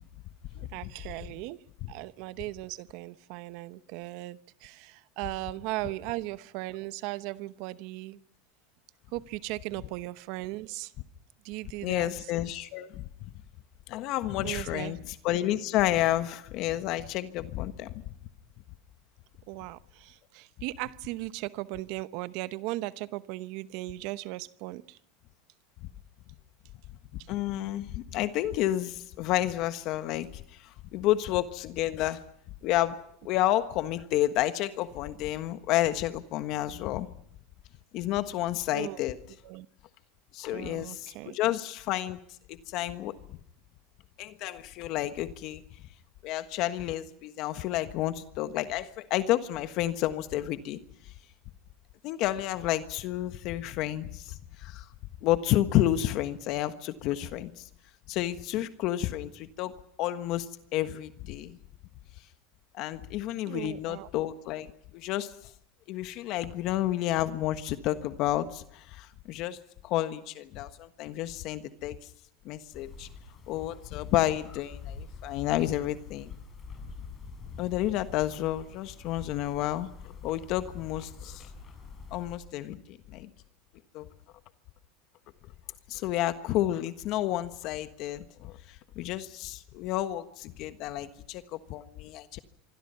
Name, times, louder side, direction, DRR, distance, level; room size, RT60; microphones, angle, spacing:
voice 1, 0.5-1.6 1.9-8.2 9.1-10.9 11.4-12.1 14.4-14.9 19.5-25.0 38.7-39.0 39.4-39.7 40.5-41.4 63.5-64.1, right 19 dB, 60° right, 15 dB, 0.9 m, -37 dB
voice 2, 11.8-13.0 13.9-17.9 27.3-32.2 32.6-37.1 37.9-39.2 40.3-42.2 42.5-43.1 44.2-45.6 46.2-50.8 52.0-54.8 55.2-57.6 58.1-61.6 62.7-65.3 65.9-69.6 69.8-72.0 72.4-73.1 73.5-76.3 77.6-79.9 80.2-81.4 82.1-83.3 83.9-84.1 85.9-88.6 88.9-92.4, left 14 dB, 55° left, 10 dB, 1.4 m, -30 dB
sound 1, 72.7-82.4, left 4 dB, 30° left, 6.9 m, -46 dB
26.0 x 24.5 x 5.7 m, 0.68 s
supercardioid pair, 120°, 0 cm